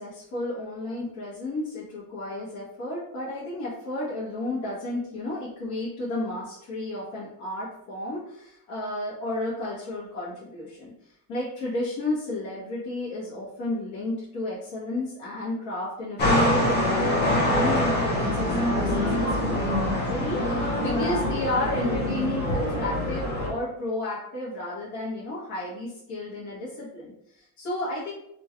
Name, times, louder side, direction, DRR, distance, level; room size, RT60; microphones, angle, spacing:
voice 1, 0.0-28.1, left 2 dB, 60° left, -9 dB, 1.4 m, -32 dB
sound 1, 16.2-23.5, left 1 dB, 25° left, 0.7 m, -24 dB
2.9 x 2.9 x 2.4 m, 0.76 s
cardioid pair, 150°, 43 cm